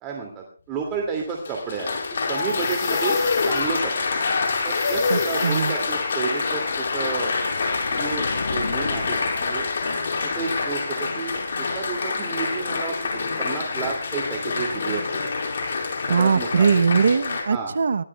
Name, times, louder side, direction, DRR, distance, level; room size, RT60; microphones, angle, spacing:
voice 1, 0.0-2.0 2.3-3.2 3.4-3.9 4.6-7.3 7.9-9.7 10.2-11.4 11.7-15.5 16.2-16.7 17.5-17.7, right 5 dB, 20° right, 0 dB, 2.5 m, -31 dB
Applause, 1.2-17.4, left 4 dB, 60° left, 5.4 m, -26 dB
sound 1, 2.3-3.9 4.4-6.1, left 12 dB, 30° left, 1.5 m, -38 dB
voice 2, 5.1-5.8 16.0-18.0, right 5 dB, 65° right, 12 dB, 0.8 m, -21 dB
sound 2, 6.6-10.8, left 4 dB, 80° left, 1.9 m, -35 dB
24.0 x 16.5 x 2.3 m, 0.40 s
hypercardioid pair, 160°, 0 cm